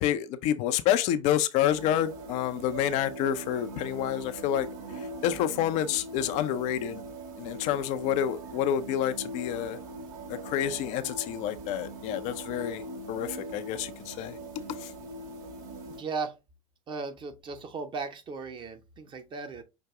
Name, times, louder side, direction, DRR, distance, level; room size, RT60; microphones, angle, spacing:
voice 1, 0.0-7.0 7.4-9.8 10.3-14.4 14.7-14.9, left 11 dB, 45° left, 0.5 m, -29 dB
sound 1, 1.6-16.0, right 2 dB, 50° right, 1.6 m, -41 dB
voice 2, 15.9-16.3 16.9-19.6, right 4 dB, 30° right, 0.9 m, -36 dB
5.9 x 2.6 x 3.5 m
figure-of-eight pair, 85°, 17 cm